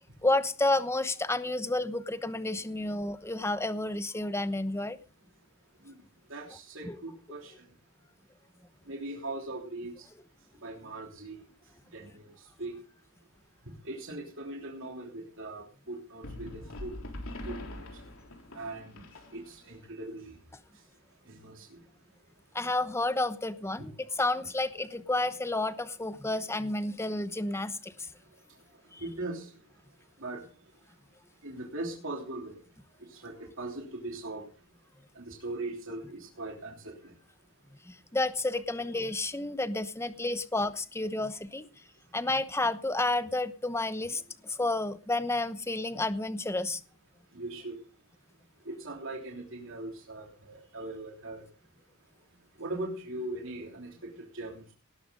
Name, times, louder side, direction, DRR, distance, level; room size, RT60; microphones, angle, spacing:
voice 1, 0.2-5.0 6.8-7.0 22.5-23.9 24.2-28.1 28.9-29.0 37.9-41.7 42.1-46.8, left 2 dB, 10° left, 12 dB, 0.9 m, -30 dB
voice 2, 6.3-7.5 8.9-10.1 10.6-11.4 11.9-12.3 12.6-12.7 13.8-16.9 17.4-17.8 18.5-19.0 19.3-20.3 21.3-21.8 23.8-23.9 29.0-29.5 30.2-30.5 31.4-32.6 33.1-34.4 35.1-37.1 47.3-47.8 48.6-51.4 52.6-54.7, right 2 dB, 65° right, 0 dB, 3.2 m, -40 dB
sound 1, 16.2-19.8, left 1 dB, 85° left, 3.7 m, -43 dB
19.0 x 12.0 x 3.9 m, 0.35 s
head